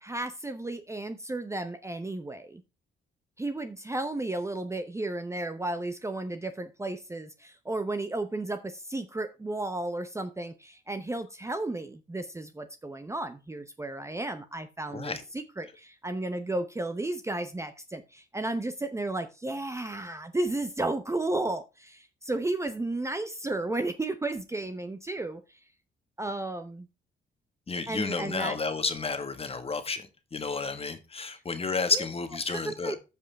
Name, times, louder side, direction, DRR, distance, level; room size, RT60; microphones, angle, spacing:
voice 1, 0.0-2.6 3.4-25.6 26.2-26.9 27.9-28.6 31.9-32.0 32.5-33.0, right 2 dB, 15° right, 0.8 m, -33 dB
voice 2, 27.7-33.0, left 4 dB, 30° left, 1.4 m, -31 dB
14.0 x 5.5 x 3.4 m
cardioid pair, 90°, 20 cm